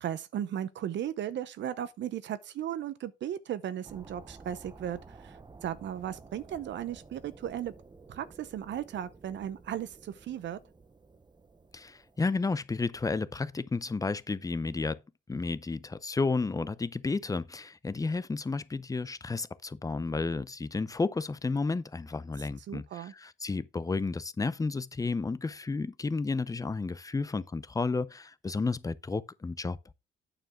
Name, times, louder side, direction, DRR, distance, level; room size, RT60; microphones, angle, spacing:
voice 1, 0.0-7.7 8.1-10.6 22.4-23.1, right 10 dB, 65° right, 0.7 m, -36 dB
sound 1, 3.8-12.3, right 3 dB, 20° right, 0.8 m, -53 dB
voice 2, 11.7-15.0 15.3-29.8, left 3 dB, 15° left, 0.6 m, -32 dB
8.9 x 7.0 x 3.6 m
cardioid pair, 90°, 20 cm